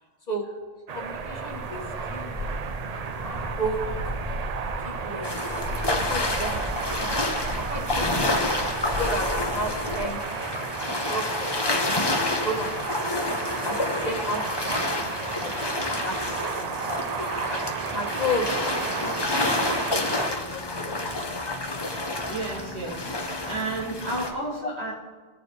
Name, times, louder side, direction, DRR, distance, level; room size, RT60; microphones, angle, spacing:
voice 1, 0.9-1.8 2.1-2.5 3.1-4.0 4.8-5.5 5.8-7.1 7.4-10.2 10.8-11.8 12.2-13.3 13.6-16.7 17.2-17.6 17.9-20.8 21.0-21.5 24.6-24.7, equal, 40° left, 2 dB, 1.3 m, -34 dB
sound 1, 0.9-20.3, right 6 dB, 50° right, 0.5 m, -34 dB
Gaggle of Brent geese, 1.0-10.1, left 1 dB, 35° right, 1.3 m, -35 dB
sound 2, 5.2-24.3, left 2 dB, 25° left, 0.9 m, -29 dB
voice 2, 22.2-23.1 23.4-24.9, right 2 dB, 85° right, -6 dB, 2.6 m, -31 dB
18.0 x 7.0 x 3.2 m, 1.4 s
omnidirectional pair, 1.1 m